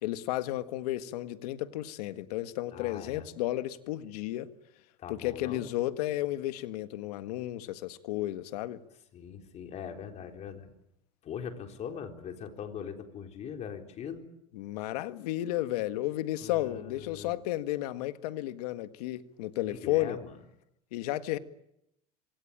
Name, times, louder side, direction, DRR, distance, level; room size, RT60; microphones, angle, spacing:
voice 1, 0.0-4.5 5.1-8.8 14.5-20.2 20.9-21.4, left 15 dB, 80° left, 1.8 m, -33 dB
voice 2, 2.7-3.3 5.0-5.6 9.1-10.7 11.2-14.3 16.4-17.3 19.6-20.3, left 7 dB, 35° left, 4.0 m, -41 dB
26.5 x 24.5 x 8.9 m
supercardioid pair, 150°, 20 cm